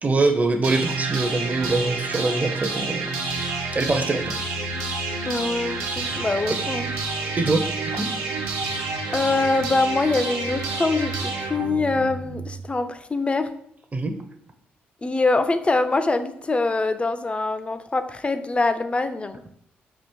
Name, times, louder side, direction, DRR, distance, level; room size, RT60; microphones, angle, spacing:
voice 1, 0.0-3.0 3.7-4.3 7.4-7.6 7.9-8.1 13.9-14.1, right 3 dB, 30° right, 6 dB, 0.5 m, -23 dB
sound 1, 0.6-12.6, right 3 dB, 70° right, 0.6 m, -29 dB
voice 2, 5.2-6.9 9.1-13.5 15.0-19.4, left 3 dB, 20° left, 10 dB, 0.4 m, -24 dB
3.4 x 2.5 x 4.4 m, 0.69 s
hypercardioid pair, 40°, 5 cm